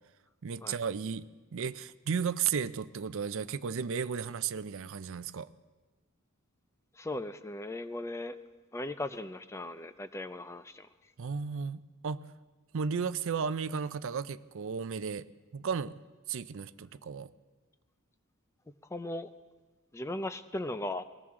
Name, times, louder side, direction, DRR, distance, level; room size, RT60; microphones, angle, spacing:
voice 1, 0.4-5.5 11.2-12.2 12.7-15.3 15.5-15.9 16.3-17.3, right 6 dB, 60° right, 15 dB, 0.5 m, -34 dB
voice 2, 6.9-8.4 8.7-10.9 18.9-19.3 19.9-21.0, left 1 dB, 15° left, 11 dB, 0.4 m, -37 dB
20.5 x 18.5 x 3.7 m, 1.2 s
head